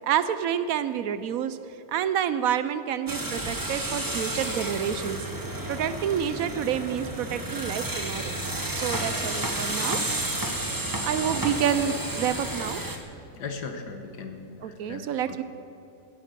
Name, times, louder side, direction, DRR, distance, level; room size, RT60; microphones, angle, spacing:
voice 1, 0.0-1.6 1.9-5.2 5.7-8.4 8.7-10.0 11.0-12.8 14.6-15.4, right 9 dB, 70° right, 13 dB, 0.9 m, -28 dB
sound 1, 3.1-13.0, right 1 dB, 15° right, 0.7 m, -31 dB
voice 2, 13.3-15.4, left 4 dB, 85° left, 6 dB, 1.8 m, -38 dB
15.5 x 9.2 x 6.7 m, 2.9 s
omnidirectional pair, 1.7 m